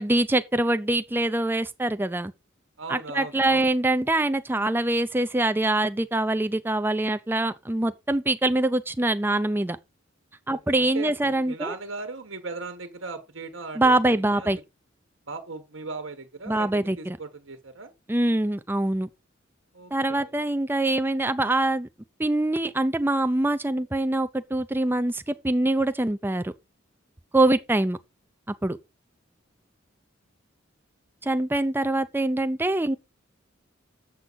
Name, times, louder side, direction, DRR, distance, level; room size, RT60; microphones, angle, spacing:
voice 1, 0.0-2.3 2.9-9.8 10.5-11.7 13.8-14.6 16.5-17.2 18.1-19.1 19.9-21.9 22.2-26.5 27.3-28.0 28.6-28.8 31.2-33.0, right 2 dB, 10° right, 0.5 m, -24 dB
voice 2, 2.8-3.7 10.5-14.6 15.3-17.9 19.7-20.4, right 3 dB, 75° right, 1.3 m, -38 dB
7.8 x 7.3 x 4.0 m
head